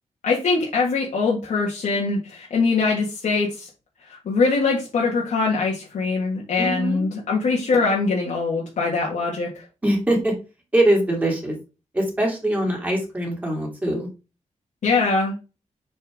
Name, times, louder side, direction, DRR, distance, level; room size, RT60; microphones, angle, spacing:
voice 1, 0.2-3.7 4.1-9.6 14.8-15.3, left 4 dB, 85° left, -4 dB, 1.9 m, -22 dB
voice 2, 6.6-7.1 9.8-10.3 10.7-11.6 11.9-14.1, right 1 dB, 10° right, 0 dB, 2.5 m, -22 dB
6.9 x 4.6 x 3.7 m, 0.30 s
wide cardioid pair, 155°, 13 cm